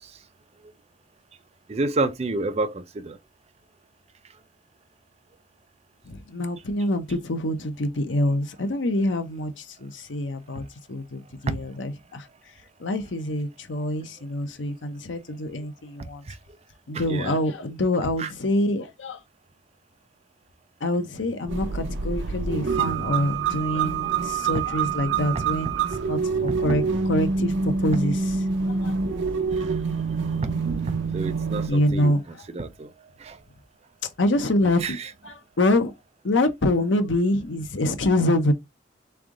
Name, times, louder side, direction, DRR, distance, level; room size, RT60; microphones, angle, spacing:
voice 1, 1.7-3.2 11.5-11.6 16.9-17.4 18.2-18.3 24.5-24.6 25.3-25.5 26.5-26.6 29.5-30.5 31.1-32.2 32.5-32.9 33.2-33.4 34.8-35.1, right 3 dB, 35° right, 0.4 m, -29 dB
voice 2, 6.1-9.5 9.8-12.2 12.8-16.2 16.9-19.2 20.8-25.7 26.1-28.4 28.8-28.9 31.7-32.2 34.2-35.0 35.2-35.9 36.2-38.5, left 1 dB, 85° left, 0.8 m, -25 dB
sound 1, 21.5-31.7, right 5 dB, 85° right, 0.7 m, -26 dB
3.6 x 3.4 x 3.7 m
head